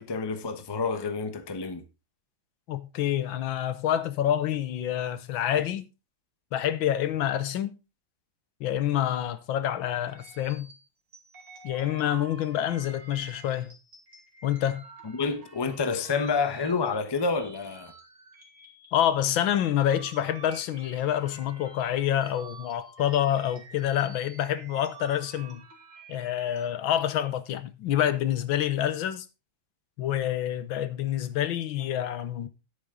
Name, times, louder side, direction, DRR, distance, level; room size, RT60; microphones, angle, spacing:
voice 1, 0.0-1.8 15.0-17.9, left 4 dB, 20° left, 0.7 m, -29 dB
voice 2, 2.7-5.9 6.5-7.8 8.6-10.7 11.6-13.8 14.4-14.8 18.9-25.7 26.1-29.3 30.0-32.5, left 11 dB, 80° left, 1.6 m, -27 dB
sound 1, 10.1-19.3 19.7-26.6, right 4 dB, 65° right, 3.2 m, -50 dB
10.0 x 8.9 x 3.7 m
omnidirectional pair, 2.2 m